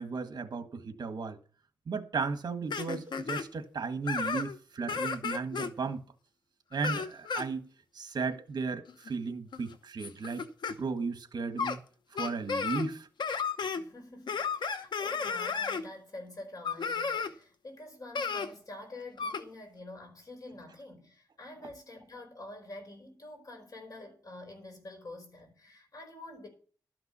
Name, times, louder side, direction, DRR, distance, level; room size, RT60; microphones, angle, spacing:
voice 1, 0.0-1.4 1.9-6.0 6.7-7.7 7.9-10.5 10.8-11.8 12.1-13.1, right 4 dB, 60° right, 1.6 m, -35 dB
sound 1, 2.7-3.4 4.1-4.6 4.9-5.7 6.7-7.5 8.9-9.1 9.5-10.7 11.6-11.8 12.2-12.9 13.2-13.8 14.3-15.8 16.6-17.3 18.1-18.5 19.2-19.4, left 5 dB, 80° left, 0.9 m, -33 dB
voice 2, 13.7-26.5, left 2 dB, 50° left, 4.9 m, -47 dB
12.5 x 5.9 x 6.9 m
wide cardioid pair, 140°, 8 cm